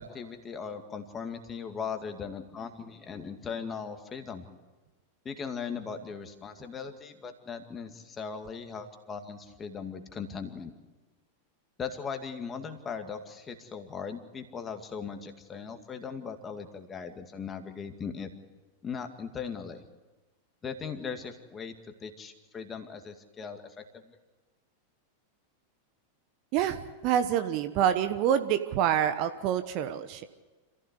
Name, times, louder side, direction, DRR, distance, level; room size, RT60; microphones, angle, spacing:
voice 1, 0.0-4.5 5.2-10.7 11.8-18.3 18.8-19.8 20.6-21.7 22.0-24.2, left 6 dB, 20° left, 6 dB, 2.2 m, -39 dB
voice 2, 26.5-30.3, right 10 dB, 40° right, 10 dB, 1.1 m, -27 dB
26.5 x 15.5 x 8.2 m, 1.2 s
figure-of-eight pair, 90°, 0 cm